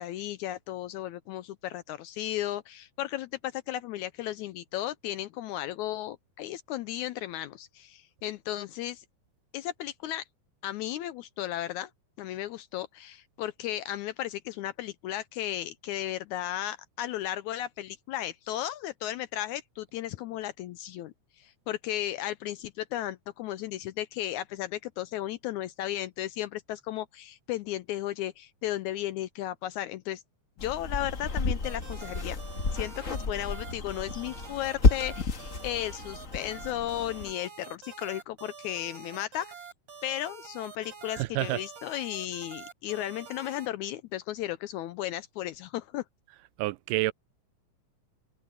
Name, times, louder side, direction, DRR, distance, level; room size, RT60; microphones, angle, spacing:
voice 1, 0.0-9.1 9.5-10.2 10.6-11.9 12.2-30.2 30.6-32.4 32.7-39.7 40.0-46.0, left 13 dB, 80° left, 1.8 m, -35 dB
sound 1, 30.6-37.3, left 3 dB, 35° left, 1.5 m, -30 dB
sound 2, 31.6-43.7, right 6 dB, 45° right, 4.4 m, -47 dB
voice 2, 41.2-41.6 46.6-47.1, right 18 dB, 80° right, 2.2 m, -28 dB
omnidirectional pair, 3.8 m